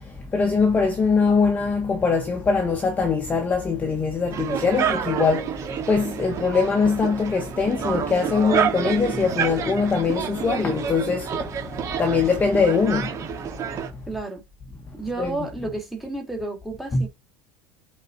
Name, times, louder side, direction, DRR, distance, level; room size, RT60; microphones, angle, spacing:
voice 1, 0.0-14.0 15.2-15.3 16.9-17.0, left 4 dB, 15° left, 1.1 m, -22 dB
sound 1, 4.3-13.9, right 8 dB, 30° right, 1.6 m, -29 dB
voice 2, 14.1-14.4 14.9-17.1, right 2 dB, ahead, 2.3 m, -31 dB
7.9 x 4.2 x 4.0 m
supercardioid pair, 160°, 11 cm